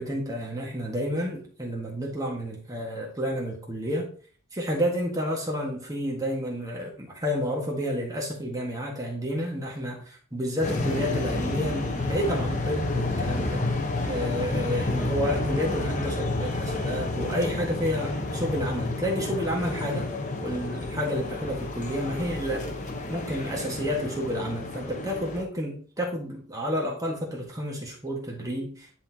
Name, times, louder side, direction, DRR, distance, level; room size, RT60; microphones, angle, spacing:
voice 1, 0.0-4.1 4.5-13.6 14.1-20.1 20.4-22.6 23.1-28.9, equal, 15° right, -1 dB, 1.6 m, -30 dB
sound 1, 10.6-25.4, left 2 dB, 35° left, 1.0 m, -30 dB
10.0 x 4.2 x 2.8 m, 0.43 s
head